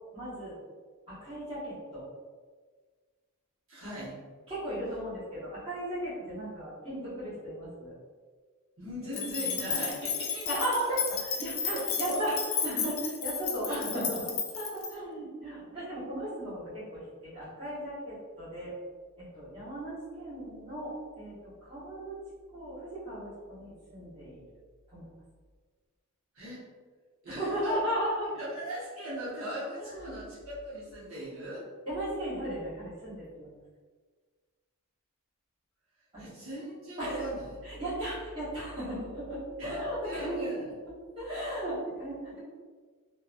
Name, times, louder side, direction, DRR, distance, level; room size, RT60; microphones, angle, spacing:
voice 1, 0.1-0.6 1.1-2.0 4.5-8.0 10.5-12.3 12.6-18.7 19.2-21.3 21.6-22.2 22.5-24.4 24.9-25.0 27.3-28.3 29.8-30.2 31.8-33.5 36.1-36.2 37.0-37.2 37.6-40.5 41.2-42.4, right 1 dB, 25° right, -12 dB, 1.2 m, -36 dB
voice 2, 3.7-4.2 8.8-10.5 10.8-11.0 11.6-12.2 13.6-14.0 26.3-26.7 27.2-27.8 28.3-31.6 36.2-37.6 39.6-40.7, right 1 dB, 65° right, -9 dB, 1.0 m, -39 dB
sound 1, 9.1-14.9, left 7 dB, 65° left, 0.4 m, -33 dB
2.7 x 2.2 x 2.5 m, 1.5 s
head